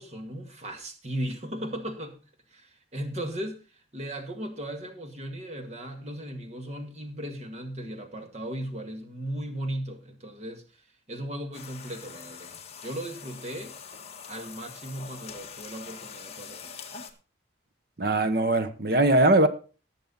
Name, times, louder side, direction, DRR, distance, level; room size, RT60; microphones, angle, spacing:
voice 1, 0.0-2.2 2.5-10.8 11.1-12.5 12.8-13.7 14.3-16.7, right 1 dB, 35° right, 1.9 m, -37 dB
sound 1, 11.5-17.1, left 6 dB, 35° left, 1.6 m, -44 dB
voice 2, 18.0-19.5, right 2 dB, 55° right, 1.1 m, -21 dB
18.5 x 6.7 x 4.0 m
head